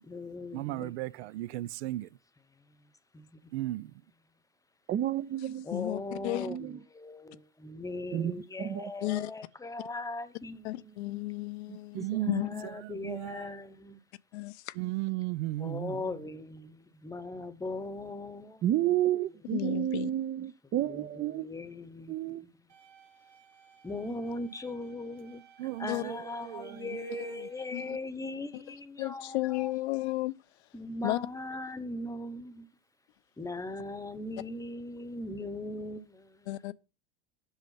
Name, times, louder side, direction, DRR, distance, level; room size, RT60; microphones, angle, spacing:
voice 1, 0.0-1.5 2.5-3.8 5.6-11.2 12.0-14.0 15.6-19.1 19.6-19.8 20.7-22.7 23.8-29.9 30.7-32.7 33.4-36.7, left 2 dB, 10° left, 0.9 m, -40 dB
voice 2, 0.5-2.1 3.5-3.9 11.9-13.5 14.7-16.0 25.6-27.5, right 16 dB, 80° right, 0.5 m, -36 dB
voice 3, 4.9-5.7 6.4-6.8 8.1-8.3 8.6-8.9 11.7-12.0 18.6-21.5 22.1-22.4, right 12 dB, 35° right, 0.5 m, -31 dB
voice 4, 5.7-6.5 9.0-9.3 10.6-12.6 14.3-14.7 19.5-20.1 25.9-26.0 27.7-28.0 29.0-30.4 31.0-31.2 36.5-36.7, left 19 dB, 80° left, 0.6 m, -33 dB
sound 1, 22.7-27.7, right 7 dB, 55° right, 2.5 m, -59 dB
8.1 x 6.4 x 5.6 m
supercardioid pair, 115°, 33 cm